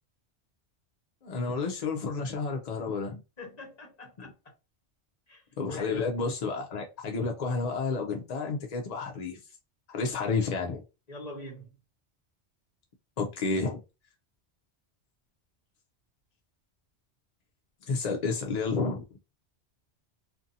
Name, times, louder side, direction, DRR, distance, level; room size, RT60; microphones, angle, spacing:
voice 1, 1.2-3.2 4.2-4.3 5.6-9.4 9.9-10.8 13.2-13.8 17.8-19.2, left 4 dB, 55° left, 0.5 m, -31 dB
voice 2, 3.4-4.3 5.3-5.4 5.7-6.0 11.1-11.7, left 2 dB, 40° left, 1.1 m, -43 dB
2.6 x 2.6 x 2.6 m
omnidirectional pair, 1.2 m